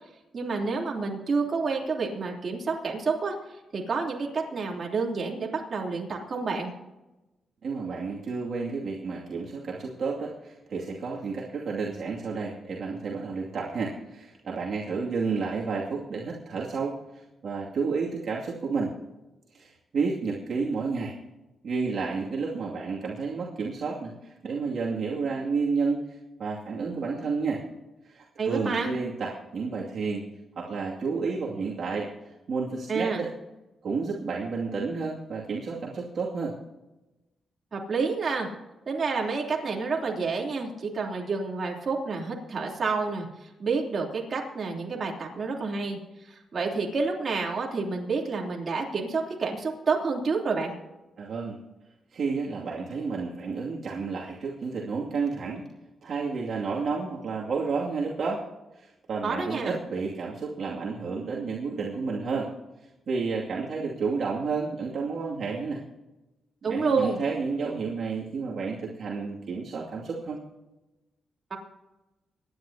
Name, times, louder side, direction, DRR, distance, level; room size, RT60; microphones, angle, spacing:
voice 1, 0.3-3.3 3.7-6.7 28.4-28.9 32.9-33.2 37.7-38.5 38.9-46.0 46.2-50.7 59.2-59.8 66.6-67.2 71.5-71.6, right 4 dB, 45° right, -1 dB, 3.2 m, -29 dB
voice 2, 7.6-17.0 17.4-19.0 19.5-21.1 21.6-26.1 26.4-27.6 28.0-30.2 30.6-32.1 32.5-33.3 33.8-36.5 51.2-51.6 52.1-55.6 56.0-58.4 58.7-62.5 63.1-65.8 66.6-70.4, right 4 dB, 60° right, -4 dB, 2.4 m, -31 dB
25.0 x 10.5 x 2.8 m, 1.0 s
cardioid pair, 115°, 0 cm